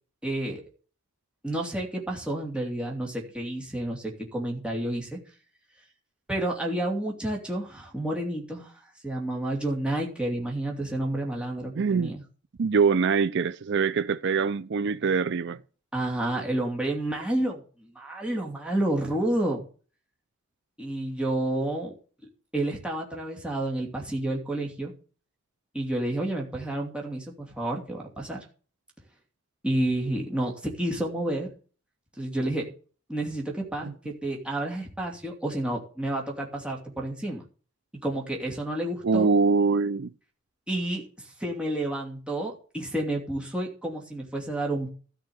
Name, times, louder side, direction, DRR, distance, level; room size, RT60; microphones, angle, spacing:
voice 1, 0.2-0.6 1.4-5.2 6.3-8.7 9.0-12.2 15.9-19.6 20.8-21.9 22.5-24.9 25.7-28.4 29.6-31.5 32.2-32.7 33.1-37.4 38.0-39.3 40.7-44.9, right 1 dB, 5° right, 2.8 m, -30 dB
voice 2, 11.8-12.1 12.6-15.6 33.8-33.9 39.0-40.1, right 5 dB, 55° right, 0.5 m, -24 dB
13.0 x 5.7 x 7.9 m
head